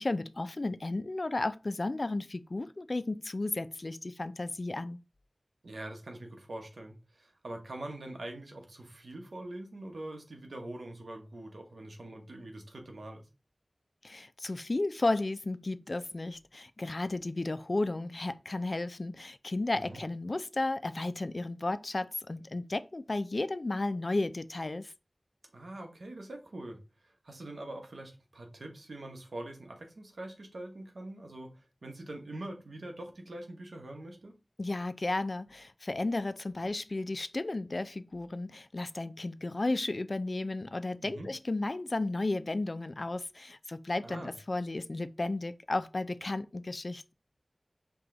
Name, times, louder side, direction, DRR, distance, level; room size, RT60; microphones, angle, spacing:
voice 1, 0.0-5.0 14.0-24.9 34.6-47.1, left 2 dB, 55° left, 0.3 m, -33 dB
voice 2, 5.6-13.2 19.7-20.0 25.5-34.3 41.0-41.3 44.0-44.3, right 1 dB, 90° right, 0.9 m, -44 dB
4.8 x 2.3 x 3.7 m
wide cardioid pair, 50°, 0 cm